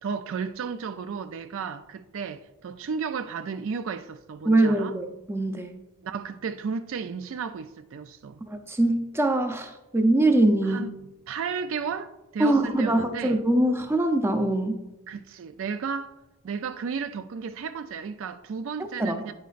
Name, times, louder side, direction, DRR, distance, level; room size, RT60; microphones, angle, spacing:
voice 1, 0.0-4.9 6.0-8.4 10.6-10.9 11.3-13.4 15.1-16.2 16.4-19.3, right 6 dB, 60° right, 0.4 m, -33 dB
voice 2, 4.5-5.7 8.5-10.9 12.4-14.8 19.0-19.2, right 1 dB, 10° right, 0.5 m, -23 dB
9.3 x 7.9 x 2.5 m
head